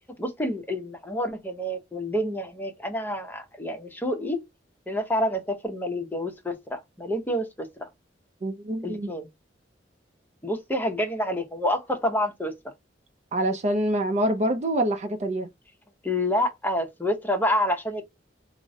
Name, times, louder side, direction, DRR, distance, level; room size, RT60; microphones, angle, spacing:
voice 1, 0.2-4.4 4.9-7.9 8.8-9.3 10.4-12.5 16.0-18.0, left 1 dB, 10° left, 0.7 m, -28 dB
voice 2, 8.4-9.1 13.3-15.5, right 1 dB, 40° right, 0.5 m, -25 dB
3.7 x 2.0 x 2.6 m
head